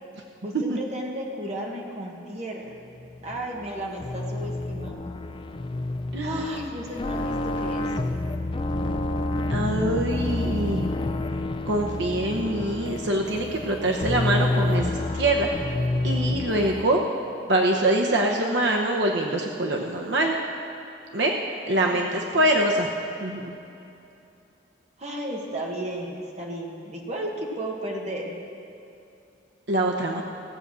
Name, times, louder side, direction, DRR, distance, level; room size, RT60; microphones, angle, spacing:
voice 1, 0.4-2.7 3.2-5.1 6.2-7.9 21.8-22.2 25.0-28.4, right 1 dB, 35° right, -1 dB, 1.6 m, -34 dB
sound 1, 3.0-16.8, left 2 dB, 25° left, 0.5 m, -28 dB
voice 2, 6.1-6.4 9.5-10.9 11.7-15.5 16.0-17.0 17.5-20.3 21.1-21.3 21.7-22.9 23.2-23.5 29.7-30.2, right 1 dB, 70° right, 1 dB, 0.9 m, -24 dB
16.0 x 8.1 x 6.1 m, 2.7 s
head